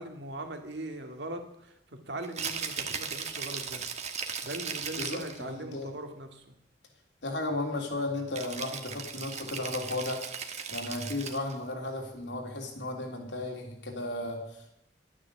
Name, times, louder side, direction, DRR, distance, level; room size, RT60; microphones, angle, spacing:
voice 1, 0.0-3.8 4.4-6.6, right 1 dB, 70° right, 5 dB, 2.0 m, -40 dB
Rattle (instrument), 2.2-5.4 8.3-11.6, right 6 dB, 40° right, 1.4 m, -37 dB
voice 2, 5.0-5.9 7.2-10.2 10.7-14.8, left 2 dB, 90° left, 2 dB, 3.2 m, -35 dB
12.5 x 9.9 x 7.1 m, 0.83 s
head